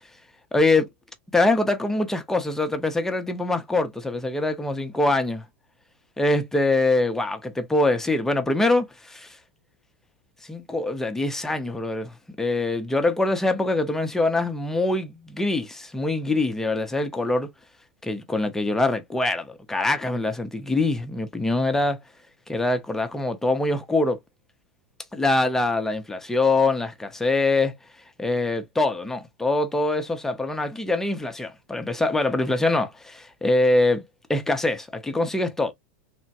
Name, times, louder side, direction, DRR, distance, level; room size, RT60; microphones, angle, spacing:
voice 1, 0.5-0.9 1.3-5.4 6.2-9.4 10.5-12.1 12.4-17.5 18.0-22.0 22.5-24.2 25.1-27.7 28.2-34.0 34.3-35.7, left 2 dB, 5° left, 0.5 m, -24 dB
3.2 x 2.1 x 2.7 m
supercardioid pair, 125°, 6 cm